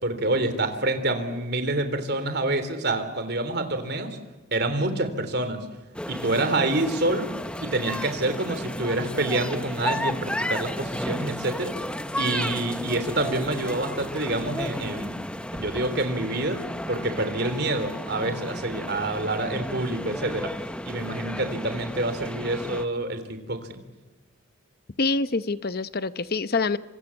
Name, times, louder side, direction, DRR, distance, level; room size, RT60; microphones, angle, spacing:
voice 1, 0.0-4.2 4.5-5.7 6.1-7.3 7.6-11.8 12.2-15.1 15.5-20.5 20.8-23.8, right 2 dB, 50° right, 9 dB, 3.4 m, -27 dB
sound 1, 5.9-22.9, left 1 dB, 5° left, 0.8 m, -33 dB
voice 2, 25.0-26.8, left 3 dB, 45° left, 14 dB, 0.8 m, -26 dB
26.5 x 26.0 x 7.2 m, 1.1 s
head